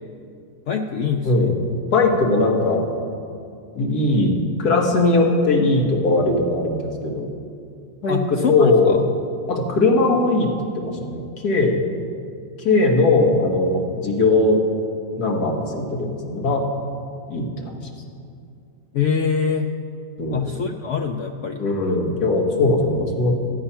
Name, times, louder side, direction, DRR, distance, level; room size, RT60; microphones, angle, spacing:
voice 1, 0.7-1.5 8.1-9.0 18.9-19.7 20.3-21.6, left 6 dB, 80° left, 4 dB, 0.6 m, -24 dB
voice 2, 1.2-1.6 1.9-2.8 3.8-7.3 8.0-9.1 9.5-11.8 12.6-14.6 15.2-16.7 17.3-17.7 20.2-20.5 21.6-23.4, left 2 dB, 60° left, 0 dB, 1.9 m, -19 dB
13.0 x 8.7 x 5.7 m, 2.4 s
omnidirectional pair, 1.9 m